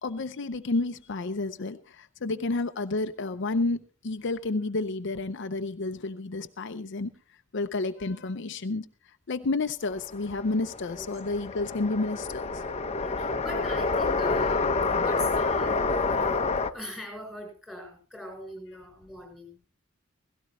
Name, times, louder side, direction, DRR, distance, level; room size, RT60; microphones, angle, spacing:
voice 1, 0.0-3.8 4.0-7.1 7.5-8.9 9.3-12.6, left 3 dB, 60° left, 9 dB, 0.7 m, -30 dB
sound 1, 9.9-16.7, left 3 dB, 30° left, 0.9 m, -28 dB
voice 2, 13.0-16.5 16.7-19.6, left 1 dB, 5° right, 2 dB, 7.8 m, -40 dB
17.0 x 16.5 x 3.1 m, 0.32 s
head